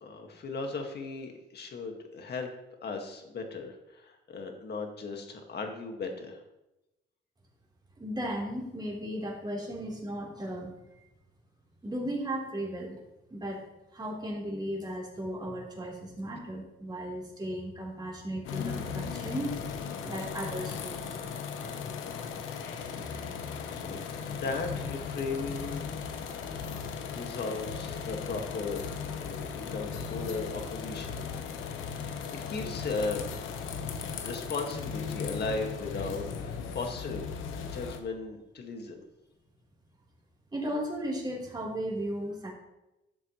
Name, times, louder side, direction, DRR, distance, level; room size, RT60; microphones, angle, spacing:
voice 1, 0.0-2.5 2.8-6.4 23.6-24.0 24.3-25.8 26.8-31.1 31.9-32.2 32.5-33.3 34.2-37.3 37.6-39.0, left 3 dB, 55° left, 3 dB, 1.9 m, -37 dB
voice 2, 8.0-10.7 11.8-13.0 13.3-13.6 13.9-19.6 20.1-21.1 24.0-24.2 40.5-42.5, right 1 dB, 20° right, -3 dB, 3.8 m, -36 dB
sound 1, 18.4-38.0, left 6 dB, 85° left, 1.1 m, -37 dB
12.5 x 7.4 x 3.2 m, 0.94 s
cardioid pair, 90°, 20 cm